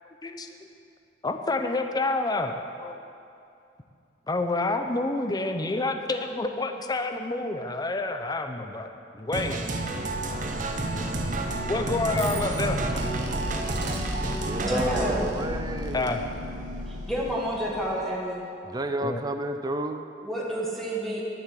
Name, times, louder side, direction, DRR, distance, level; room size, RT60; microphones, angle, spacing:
voice 1, 1.2-2.5 2.8-3.0 4.3-8.9 9.2-9.6 11.7-12.9 15.9-16.2 19.0-19.2, left 2 dB, 25° left, 6 dB, 0.7 m, -28 dB
sound 1, 9.3-15.2, right 2 dB, 45° right, 0.9 m, -31 dB
sound 2, 9.7-18.2, equal, 75° right, 1.3 m, -34 dB
voice 2, 12.1-13.4 14.4-16.2 18.6-20.1, right 1 dB, 20° right, 7 dB, 0.5 m, -33 dB
voice 3, 14.6-15.3 17.1-18.5 20.2-21.2, equal, ahead, -5 dB, 1.8 m, -29 dB
11.0 x 7.2 x 7.7 m, 2.5 s
head